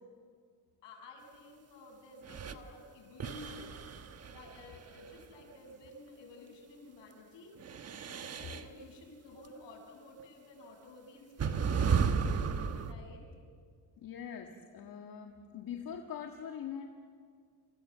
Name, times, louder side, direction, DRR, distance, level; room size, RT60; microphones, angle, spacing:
voice 1, 0.8-3.7 4.2-7.6 8.0-11.6 12.8-13.2, left 2 dB, 60° left, 2 dB, 7.5 m, -52 dB
sound 1, 2.2-2.6 3.2-5.2 7.6-8.7 10.2-10.3 11.4-12.9, right 6 dB, 30° right, 1.3 m, -33 dB
voice 2, 14.0-16.9, left 8 dB, 45° left, 3 dB, 1.8 m, -43 dB
29.5 x 26.5 x 7.5 m, 2.1 s
cardioid pair, 175°, 49 cm